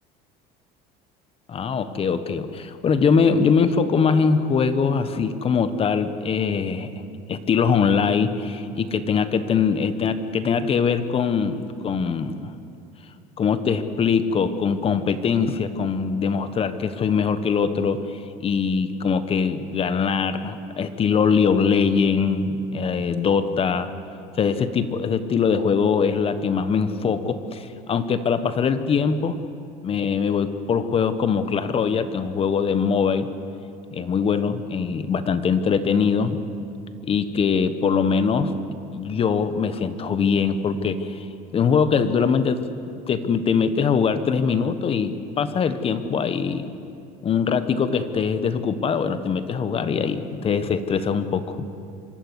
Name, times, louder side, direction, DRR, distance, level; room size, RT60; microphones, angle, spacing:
voice 1, 1.5-6.9 7.3-12.5 13.4-18.0 18.4-23.9 24.4-29.4 29.8-33.3 33.9-36.4 37.0-38.5 38.9-41.2 41.5-42.6 43.1-46.7 47.2-51.6, left 6 dB, 30° left, 11 dB, 1.2 m, -22 dB
26.0 x 14.0 x 9.8 m, 2.5 s
cardioid pair, 140°, 19 cm